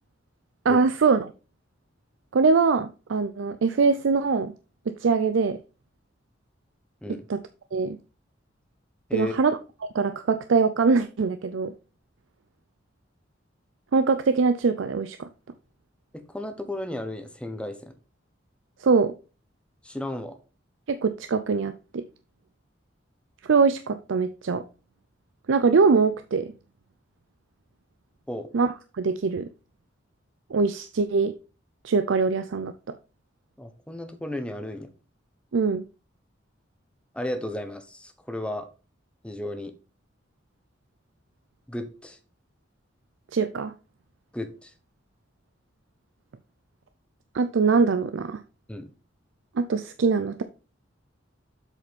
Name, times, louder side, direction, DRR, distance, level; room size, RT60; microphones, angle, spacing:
voice 1, 0.6-1.3 2.3-4.5 4.9-5.6 7.3-7.4 7.7-8.0 9.1-9.6 9.9-11.7 13.9-15.3 18.8-19.1 20.9-22.0 23.4-24.6 25.5-26.5 28.5-29.5 30.5-31.3 31.8-32.7 35.5-35.8 43.3-43.7 47.3-48.4 49.6-50.4, right 4 dB, 80° right, 10 dB, 0.5 m, -22 dB
voice 2, 16.1-17.9 19.8-20.4 28.3-28.5 33.6-34.9 37.1-38.7 39.2-39.7 41.7-42.2 44.3-44.7 48.7-48.9, left 1 dB, 5° left, 7 dB, 1.0 m, -34 dB
7.9 x 4.9 x 5.2 m, 0.34 s
head